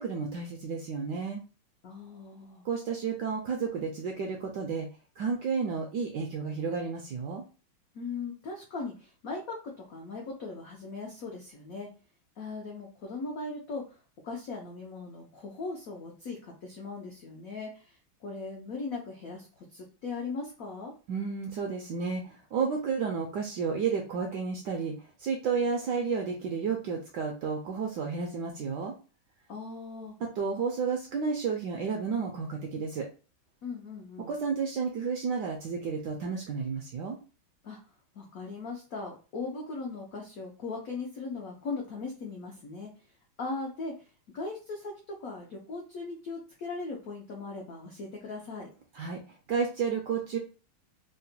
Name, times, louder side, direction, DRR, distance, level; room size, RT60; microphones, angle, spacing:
voice 1, 0.0-1.4 2.6-4.9 5.2-7.4 21.1-24.9 25.2-28.9 30.2-33.1 34.3-37.2 48.9-49.2 49.5-50.4, right 5 dB, 75° right, 2 dB, 1.0 m, -31 dB
voice 2, 1.8-2.6 7.9-11.9 12.4-13.8 14.2-20.9 29.5-30.1 33.6-34.3 37.6-37.8 38.1-42.9 43.4-43.9 44.3-48.7, left 3 dB, 85° left, -1 dB, 0.7 m, -39 dB
3.8 x 2.1 x 2.6 m, 0.35 s
omnidirectional pair, 2.3 m